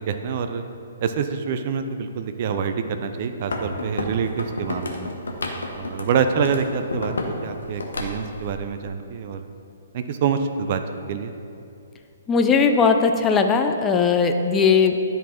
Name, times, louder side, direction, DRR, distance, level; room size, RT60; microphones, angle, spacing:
voice 1, 0.1-0.6 1.0-5.1 5.8-9.5 9.9-10.8 11.1-11.3, right 6 dB, 40° right, 8 dB, 0.4 m, -26 dB
sound 1, 3.4-7.4 7.6-8.5, left 2 dB, 70° left, 0.9 m, -30 dB
voice 2, 12.3-15.0, left 5 dB, 15° left, 5 dB, 0.4 m, -18 dB
10.0 x 4.0 x 4.3 m, 2.6 s
figure-of-eight pair, 125°, 0 cm